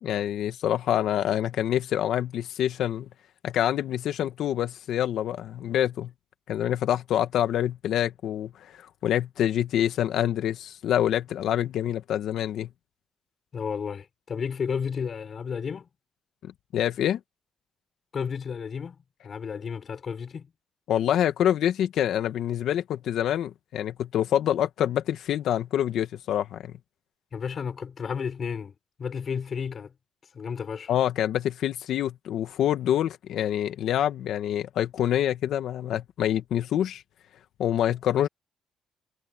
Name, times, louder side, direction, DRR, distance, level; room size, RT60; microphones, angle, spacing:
voice 1, 0.0-3.1 3.4-6.1 6.5-8.8 9.0-12.7 16.7-17.2 20.9-26.7 30.9-37.0 37.6-38.3, left 11 dB, 75° left, 1.8 m, -26 dB
voice 2, 13.5-15.9 18.1-20.5 27.3-29.9 30.3-30.9, left 6 dB, 45° left, 6.3 m, -32 dB
cardioid pair, 90°, 0 cm